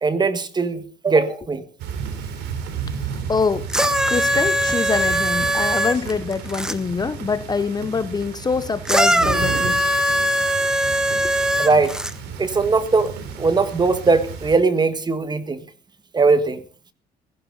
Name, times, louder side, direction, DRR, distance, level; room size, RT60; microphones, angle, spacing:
voice 1, 0.0-1.6 11.6-12.0 12.4-13.1 13.4-15.6 16.1-16.6, right 4 dB, 25° right, 1.6 m, -19 dB
sound 1, 1.8-14.6, right 6 dB, 85° right, 3.3 m, -33 dB
voice 2, 3.3-3.7 4.1-9.9 11.2-11.3, left 5 dB, 25° left, 0.8 m, -24 dB
sound 2, 3.7-6.8 8.9-12.1 13.1-13.2, equal, 5° right, 1.0 m, -21 dB
16.5 x 14.5 x 4.0 m
cardioid pair, 110°, 17 cm